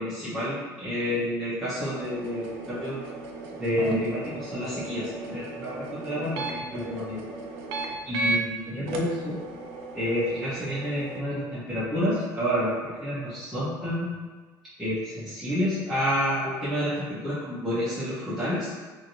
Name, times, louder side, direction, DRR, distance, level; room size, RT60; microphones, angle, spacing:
voice 1, 0.0-3.0 3.6-7.2 8.1-9.4 9.9-14.2 14.8-18.7, equal, ahead, -13 dB, 0.8 m, -29 dB
sound 1, 1.8-8.4 8.9-11.2, right 3 dB, 90° right, 0.4 m, -35 dB
2.7 x 2.6 x 2.9 m, 1.3 s
cardioid pair, 145°, 8 cm